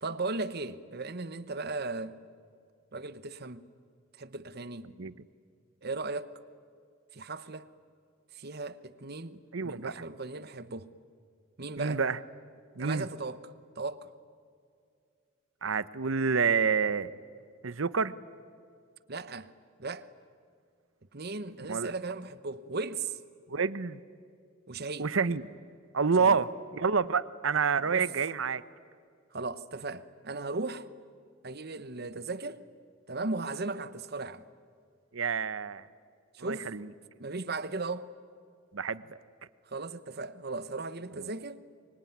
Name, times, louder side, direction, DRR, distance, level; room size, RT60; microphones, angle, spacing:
voice 1, 0.0-2.2 2.9-3.6 4.2-4.9 5.8-6.3 7.1-7.7 8.3-10.9 11.6-12.0 12.8-13.4 13.8-14.1 19.1-19.5 19.8-20.1 21.1-23.2 24.7-25.1 26.2-26.4 27.9-28.1 29.3-30.9 31.4-32.6 33.1-34.4 36.3-36.7 37.2-38.1 39.7-41.6, right 3 dB, 50° right, 1.0 m, -37 dB
voice 2, 9.5-10.0 11.8-12.2 12.8-13.1 15.6-17.1 17.6-18.2 21.7-21.9 23.5-24.0 25.0-25.6 25.9-28.6 35.1-35.8 36.4-36.9 38.7-39.2, right 5 dB, 75° right, 0.9 m, -28 dB
25.0 x 24.0 x 9.5 m
head